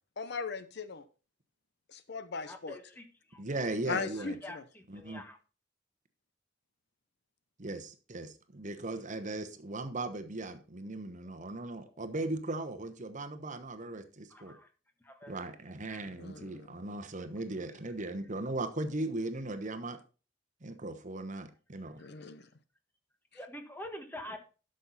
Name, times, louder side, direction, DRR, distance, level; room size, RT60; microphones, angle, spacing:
voice 1, 0.2-1.1 1.9-2.8 3.9-4.6 16.2-16.6 22.0-22.4, left 5 dB, 60° left, 12 dB, 0.8 m, -38 dB
voice 2, 2.4-3.4 4.2-5.4 14.3-14.7 15.0-15.5 15.9-16.1 22.0-22.1 23.3-24.5, left 1 dB, 10° left, 5 dB, 1.5 m, -46 dB
voice 3, 3.4-4.4 4.9-5.2 7.6-14.6 15.3-20.0 20.6-22.0, right 2 dB, 40° right, 9 dB, 1.1 m, -38 dB
12.0 x 6.5 x 4.1 m, 0.33 s
head